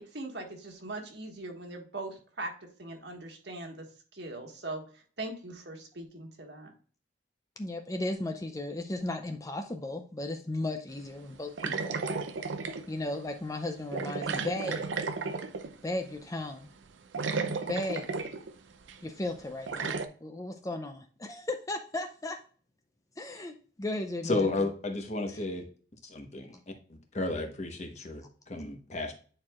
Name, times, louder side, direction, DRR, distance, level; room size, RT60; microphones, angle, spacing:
voice 1, 0.0-2.5 2.8-3.9 4.1-6.7, right 2 dB, 65° right, 3 dB, 1.5 m, -41 dB
voice 2, 7.6-12.2 12.9-14.9 15.8-16.7 17.7-18.1 19.0-22.4 23.2-24.5 25.3-25.4, left 2 dB, 20° left, 5 dB, 0.5 m, -35 dB
sound 1, 11.6-12.9 13.9-15.8 16.8-16.9 17.1-18.5 18.9-19.0 19.7-20.1, right 4 dB, 80° right, 0.6 m, -33 dB
voice 3, 24.2-25.7 26.0-26.6 26.9-29.1, left 2 dB, 35° left, 4 dB, 1.1 m, -33 dB
9.7 x 4.5 x 2.4 m, 0.42 s
head